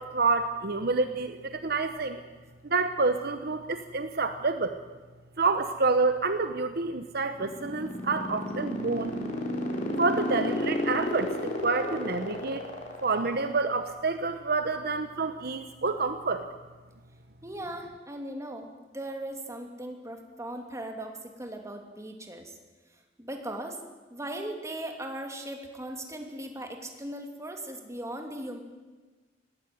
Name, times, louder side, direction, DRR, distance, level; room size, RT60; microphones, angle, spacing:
voice 1, 0.0-2.2 2.6-4.8 5.4-9.1 10.0-12.7 13.0-16.5, right 3 dB, 55° right, 9 dB, 1.0 m, -28 dB
sound 1, 7.2-13.8, left 1 dB, 45° left, 4.3 m, -31 dB
voice 2, 17.4-18.7 18.9-22.5 23.2-23.8 24.1-28.6, right 1 dB, 15° right, 3 dB, 2.6 m, -38 dB
19.5 x 15.0 x 9.2 m, 1.3 s
head